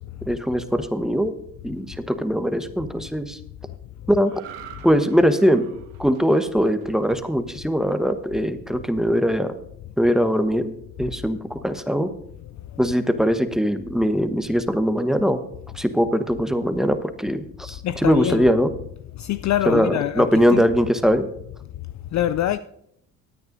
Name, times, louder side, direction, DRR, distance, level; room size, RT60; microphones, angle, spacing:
voice 1, 0.3-1.3 1.6-3.4 4.1-4.4 4.8-5.6 6.0-9.5 10.0-12.1 12.8-15.4 15.7-18.7 19.7-21.3, equal, ahead, 1.0 m, -21 dB
sound 1, 4.2-7.7 8.1-8.4, right 9 dB, 75° right, 1.5 m, -45 dB
voice 2, 17.8-18.5 19.2-20.6 22.1-22.6, left 12 dB, 45° left, 0.4 m, -24 dB
18.5 x 9.5 x 2.6 m
hypercardioid pair, 55°, 42 cm